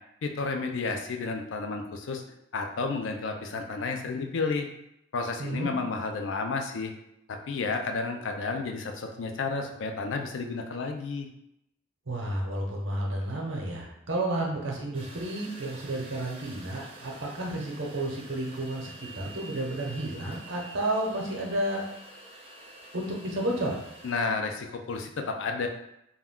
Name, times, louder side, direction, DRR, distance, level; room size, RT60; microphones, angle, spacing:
voice 1, 0.2-2.2 2.5-4.7 5.1-6.9 7.3-11.3 24.0-25.7, left 4 dB, 75° left, 4 dB, 0.4 m, -31 dB
voice 2, 5.4-5.7 12.1-21.8 22.9-23.8, right 1 dB, 75° right, -1 dB, 0.7 m, -31 dB
sound 1, 14.9-24.1, right 2 dB, 30° right, 0.4 m, -48 dB
2.3 x 2.2 x 3.5 m, 0.82 s
head